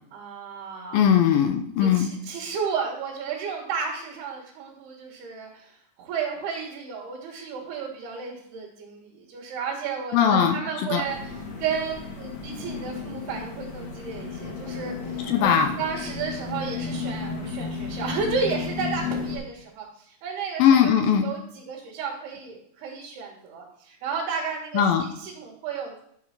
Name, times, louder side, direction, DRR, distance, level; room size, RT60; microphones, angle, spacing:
voice 1, 0.1-1.0 1.8-15.5 15.8-20.9 21.2-26.0, right 6 dB, 90° right, -3 dB, 3.6 m, -33 dB
voice 2, 0.9-2.1 10.1-10.6 10.9-11.0 15.3-15.7 20.6-21.2 24.7-25.0, left 8 dB, 75° left, 6 dB, 2.4 m, -19 dB
sound 1, 11.0-19.4, left 5 dB, 55° left, 2.4 m, -33 dB
11.0 x 4.7 x 5.7 m, 0.69 s
omnidirectional pair, 4.5 m